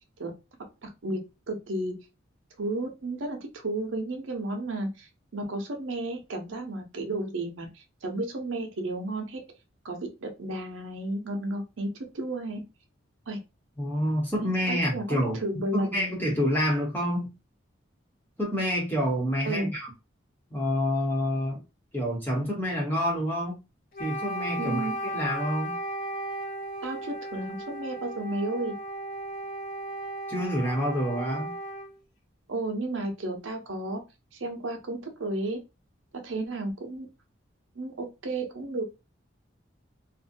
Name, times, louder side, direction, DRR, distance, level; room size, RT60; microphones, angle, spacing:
voice 1, 0.8-1.2 1.5-1.9 2.6-9.4 9.8-11.9 12.1-12.6 13.3-13.4 14.7-16.1 19.5-19.7 24.6-24.9 26.8-28.7 32.5-34.0 34.3-35.6 36.2-37.1 37.7-38.8, right 2 dB, 80° right, 0.7 m, -33 dB
voice 2, 13.8-15.4 15.7-17.3 18.4-19.9 20.5-21.6 21.9-23.6 24.0-24.9 25.1-25.8 30.3-31.5, equal, 10° left, 0.9 m, -27 dB
Wind instrument woodwind instrument, 23.9-32.0, right 1 dB, 45° left, 0.6 m, -35 dB
2.6 x 2.2 x 2.5 m
head